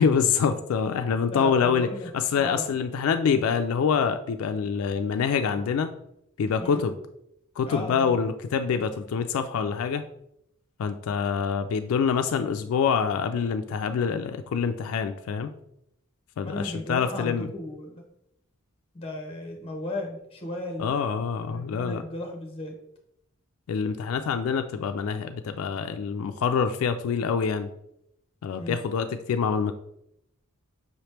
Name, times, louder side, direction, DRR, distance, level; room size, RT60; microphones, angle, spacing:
voice 1, 0.0-5.9 6.4-6.9 7.6-10.0 10.8-15.5 16.4-17.5 20.8-22.0 23.7-27.7 28.4-29.7, left 6 dB, 75° left, 8 dB, 0.3 m, -26 dB
voice 2, 1.3-2.1 2.4-2.7 6.6-6.9 7.7-8.2 16.4-17.9 18.9-20.9 21.5-22.8 28.6-28.8, left 2 dB, 25° left, 2 dB, 0.8 m, -35 dB
5.5 x 3.0 x 3.3 m, 0.77 s
head